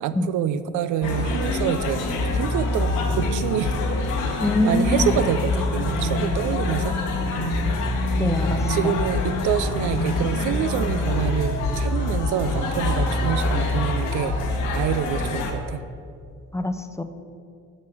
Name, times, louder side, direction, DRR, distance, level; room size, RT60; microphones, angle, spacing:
voice 1, 0.0-2.0 2.3-3.7 4.3-7.0 8.2-14.3 14.7-15.8, right 10 dB, 80° right, 13 dB, 0.5 m, -27 dB
sound 1, 1.0-15.5, left 2 dB, 85° left, 1.2 m, -25 dB
voice 2, 4.4-5.1 8.2-9.0 16.5-17.0, left 2 dB, 10° left, 8 dB, 0.5 m, -24 dB
7.3 x 6.3 x 6.1 m, 2.4 s
cardioid pair, 90°, 30 cm